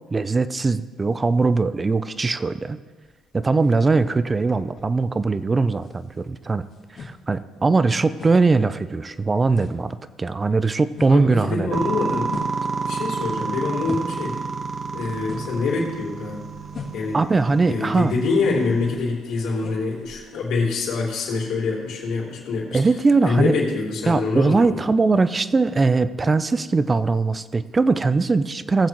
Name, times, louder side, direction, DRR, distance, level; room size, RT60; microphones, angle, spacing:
voice 1, 0.1-2.8 3.3-6.6 7.0-11.8 17.1-18.2 22.7-23.6 24.1-28.9, right 3 dB, 25° right, 14 dB, 0.5 m, -20 dB
sound 1, 3.0-5.4 5.7-14.3 14.6-21.3, left 4 dB, 55° left, 2.6 m, -43 dB
voice 2, 11.1-12.3 12.9-14.3 14.9-16.4 16.9-17.2 17.7-22.8 23.2-24.7, left 4 dB, 75° left, -4 dB, 3.5 m, -25 dB
sound 2, 11.7-19.0, right 4 dB, 40° right, 1.1 m, -30 dB
19.5 x 7.4 x 3.1 m, 1.4 s
cardioid pair, 85°, 0 cm